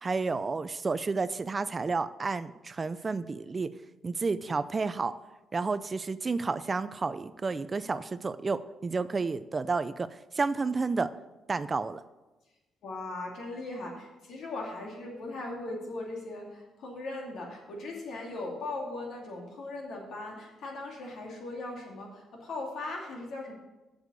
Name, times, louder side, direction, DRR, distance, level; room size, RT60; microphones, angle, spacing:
voice 1, 0.0-3.7 4.0-5.1 5.5-11.1 11.5-12.0, right 4 dB, 30° right, 14 dB, 0.4 m, -31 dB
voice 2, 12.8-23.5, left 2 dB, 65° left, 0 dB, 2.5 m, -39 dB
7.3 x 6.4 x 6.7 m, 1.1 s
cardioid pair, 90°, 0 cm